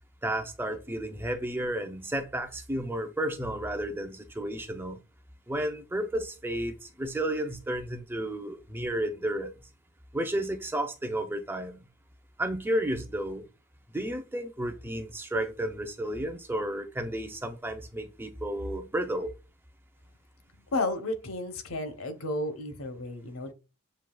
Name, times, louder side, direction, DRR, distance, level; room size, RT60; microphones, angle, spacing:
voice 1, 0.2-5.0 5.5-9.5 10.1-11.8 12.4-13.4 13.9-19.3, right 1 dB, 10° right, 0.5 m, -32 dB
voice 2, 20.7-23.5, left 2 dB, 70° left, 0.8 m, -32 dB
7.3 x 2.8 x 2.3 m
head